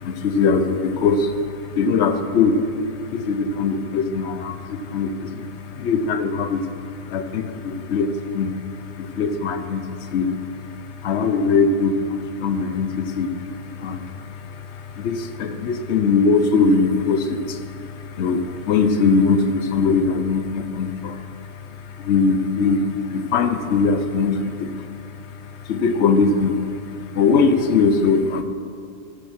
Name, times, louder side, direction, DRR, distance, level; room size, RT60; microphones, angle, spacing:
voice 1, 0.0-1.3 1.7-2.6 3.1-6.6 7.1-8.6 9.0-10.3 11.0-13.5 13.8-14.5 14.7-21.2 22.0-24.7 25.7-26.6 27.1-28.4, left 4 dB, 75° left, 8 dB, 1.0 m, -21 dB
13.0 x 6.4 x 4.5 m, 2.5 s
omnidirectional pair, 1.2 m